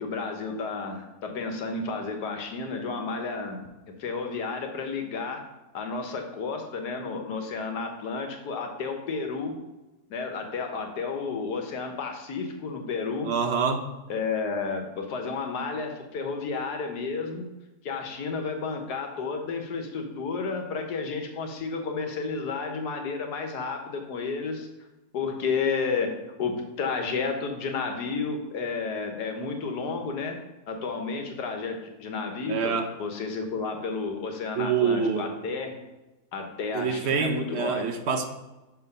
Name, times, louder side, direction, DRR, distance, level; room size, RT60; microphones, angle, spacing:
voice 1, 0.0-3.6 4.0-5.4 5.7-9.6 10.1-13.3 14.1-17.5 17.8-24.7 25.1-26.1 26.4-30.4 30.7-35.7 36.3-37.8, left 4 dB, 90° left, 4 dB, 1.6 m, -31 dB
voice 2, 13.2-13.9 32.5-32.9 34.5-35.3 36.7-38.2, right 6 dB, 55° right, 6 dB, 0.9 m, -26 dB
6.1 x 4.7 x 5.3 m, 1.1 s
omnidirectional pair, 1.7 m